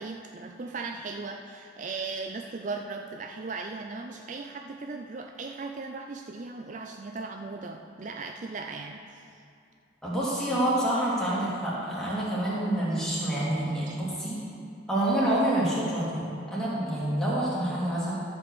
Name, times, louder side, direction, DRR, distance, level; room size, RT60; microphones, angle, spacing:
voice 1, 0.0-9.4 13.9-14.0, right 3 dB, 40° right, 3 dB, 0.4 m, -37 dB
voice 2, 10.0-14.4 14.9-18.2, right 1 dB, 5° left, -9 dB, 2.5 m, -27 dB
12.5 x 5.4 x 7.1 m, 2.5 s
head